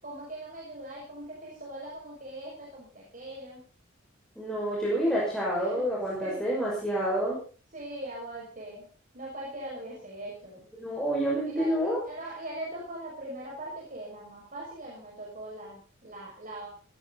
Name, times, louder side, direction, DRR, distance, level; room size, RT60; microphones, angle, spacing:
voice 1, 0.0-3.6 5.1-5.2 5.6-5.8 6.2-6.4 7.7-8.9 9.1-10.6 11.5-16.7, right 1 dB, 40° right, -3 dB, 6.2 m, -41 dB
voice 2, 4.4-7.4 10.8-12.0, right 1 dB, 5° left, -5 dB, 5.9 m, -28 dB
17.5 x 17.0 x 4.1 m, 0.39 s
head